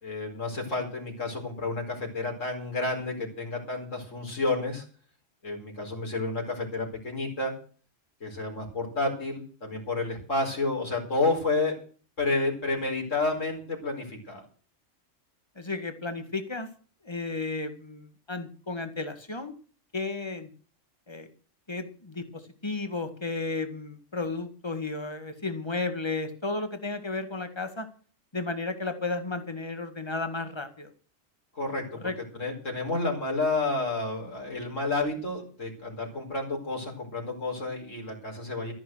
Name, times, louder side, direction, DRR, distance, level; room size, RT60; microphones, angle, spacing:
voice 1, 0.0-4.8 5.4-7.5 8.2-11.8 12.2-14.4 31.5-31.8 32.4-38.7, left 2 dB, 75° left, 1 dB, 5.0 m, -30 dB
voice 2, 15.6-16.7 17.0-19.5 19.9-20.5 21.1-21.3 21.7-27.9 28.3-30.9 32.0-32.2, left 3 dB, 20° left, 9 dB, 1.9 m, -33 dB
13.5 x 11.0 x 6.3 m, 0.40 s
omnidirectional pair, 1.3 m